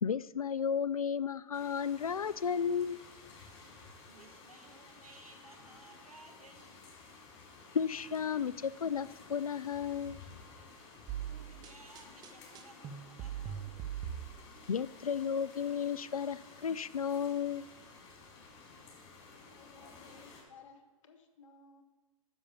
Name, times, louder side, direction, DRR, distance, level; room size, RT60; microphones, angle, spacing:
voice 1, 0.0-3.0 7.7-10.2 14.7-17.7, left 7 dB, 80° left, 19 dB, 0.4 m, -33 dB
sound 1, 1.5-20.4, left 4 dB, 40° left, 3.8 m, -54 dB
voice 2, 4.1-6.8 11.3-13.8, right 3 dB, 80° right, 3 dB, 1.7 m, -58 dB
sound 2, 11.1-14.8, right 10 dB, 20° right, 0.7 m, -42 dB
voice 3, 19.2-21.8, left 4 dB, 60° left, 7 dB, 1.4 m, -58 dB
10.0 x 6.9 x 7.1 m, 1.3 s
figure-of-eight pair, 105°, 18 cm